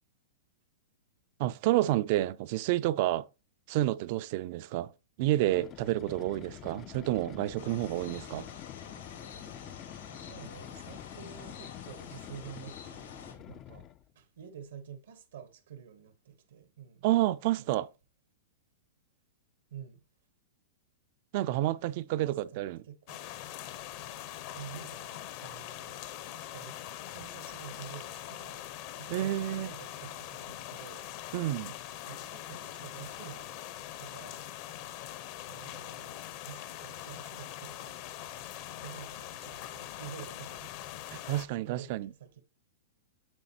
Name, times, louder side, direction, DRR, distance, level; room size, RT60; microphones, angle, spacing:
voice 1, 1.4-3.3 3.7-4.9 5.2-8.5 17.0-17.9 21.3-22.8 29.1-29.7 31.3-31.7 41.1-42.1, right 15 dB, 50° right, 0.4 m, -29 dB
sound 1, 5.3-14.1, left 12 dB, 30° left, 0.3 m, -47 dB
sound 2, 7.6-13.3, left 5 dB, 85° left, 3.0 m, -49 dB
voice 2, 10.1-17.1 17.5-17.9 19.7-20.1 22.2-23.2 24.5-26.0 26.3-26.8 27.1-28.6 28.9-31.2 32.1-33.6 34.0-34.5 35.5-38.0 38.8-40.7 41.1-42.4, right 9 dB, 85° right, 1.1 m, -49 dB
sound 3, 23.1-41.5, left 12 dB, 45° left, 0.7 m, -43 dB
8.9 x 6.4 x 2.8 m
hypercardioid pair, 145°, 0 cm